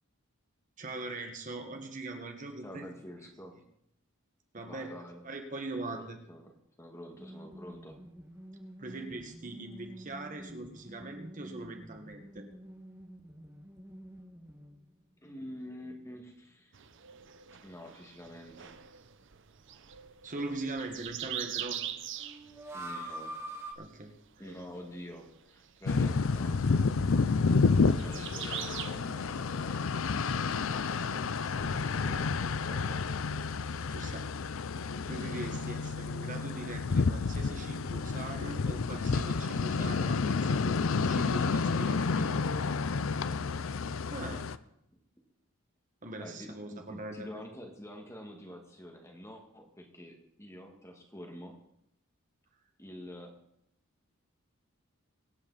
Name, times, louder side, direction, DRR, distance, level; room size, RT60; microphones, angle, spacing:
voice 1, 0.8-2.9 4.5-4.9 5.2-6.2 8.8-12.4 20.2-21.8 23.8-24.1 33.9-34.3 35.1-42.5 44.1-44.4 46.0-47.4, right 2 dB, 40° right, 4 dB, 1.6 m, -41 dB
voice 2, 2.6-3.6 4.6-5.2 5.7-8.0 15.2-16.7 17.6-18.8 22.7-23.4 24.4-26.6 27.8-31.2 31.5-33.2 46.2-51.5 52.8-53.3, equal, 15° left, 2 dB, 1.9 m, -48 dB
sound 1, 7.2-15.0 15.3-15.4 22.2-23.7, right 1 dB, 10° right, 1.5 m, -46 dB
sound 2, 16.7-32.9, right 11 dB, 60° right, 0.8 m, -45 dB
sound 3, 25.8-44.6, left 4 dB, 70° left, 0.5 m, -30 dB
24.0 x 8.8 x 4.1 m, 0.77 s
head